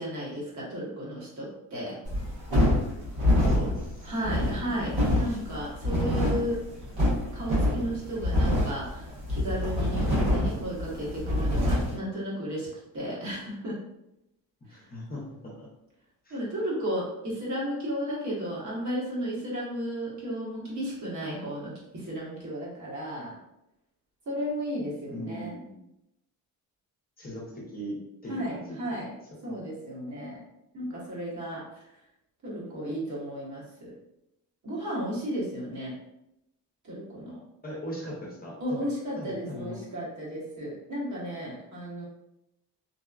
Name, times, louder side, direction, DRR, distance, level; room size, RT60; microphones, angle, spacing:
voice 1, 0.0-1.9 4.0-6.6 7.3-12.7 12.9-13.8 14.7-14.8 16.3-23.4 24.3-25.5 28.3-29.1 29.4-30.4 30.7-31.9 32.4-33.9 34.6-35.9 36.8-37.4 38.6-42.1, equal, 50° right, -6 dB, 1.2 m, -34 dB
sound 1, 2.0-12.0, left 1 dB, 90° right, 1.3 m, -26 dB
voice 2, 3.4-4.9 14.7-15.7 16.2-16.4 25.1-25.8 27.2-28.0 28.2-28.8 29.4-29.5 37.6-38.9 39.2-39.8, equal, 25° left, -4 dB, 0.7 m, -39 dB
2.8 x 2.1 x 2.3 m, 0.85 s
cardioid pair, 120°, 37 cm